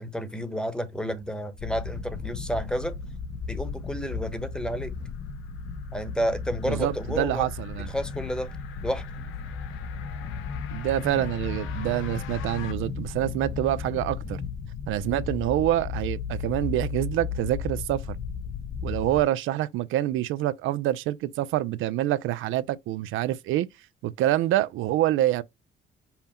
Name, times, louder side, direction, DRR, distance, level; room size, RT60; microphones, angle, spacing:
voice 1, 0.0-2.9 3.5-4.9 5.9-7.5 7.9-8.5 8.8-9.1, equal, 5° left, 1.0 m, -30 dB
sound 1, 1.6-19.2, left 5 dB, 55° left, 0.9 m, -35 dB
sound 2, 4.4-12.7, left 10 dB, 90° left, 0.8 m, -47 dB
voice 2, 6.7-7.9 10.7-14.4 14.9-18.2 18.8-23.7 24.0-25.4, right 13 dB, 85° right, 0.4 m, -26 dB
5.5 x 2.1 x 4.2 m
cardioid pair, 90°, 20 cm